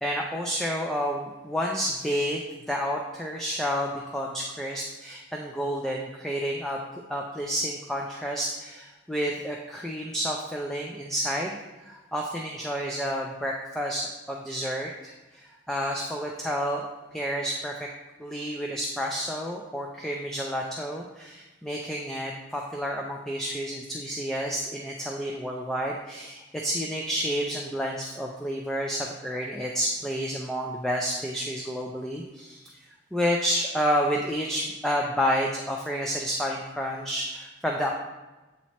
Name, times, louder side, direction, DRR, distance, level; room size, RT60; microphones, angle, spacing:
voice 1, 0.0-6.8 7.1-17.9 18.2-32.8 33.1-37.9, equal, ahead, -1 dB, 0.4 m, -30 dB
8.1 x 3.1 x 4.2 m, 1.1 s
head